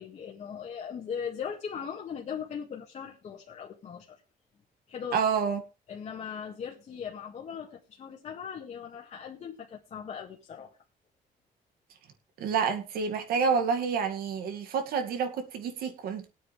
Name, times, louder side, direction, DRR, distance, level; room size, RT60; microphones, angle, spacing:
voice 1, 0.0-4.2 4.9-5.2 5.9-10.8, left 7 dB, 50° left, 1.8 m, -39 dB
voice 2, 5.1-5.6 12.4-16.3, right 6 dB, 90° right, 2.2 m, -28 dB
21.0 x 8.8 x 3.4 m
cardioid pair, 130°, 15 cm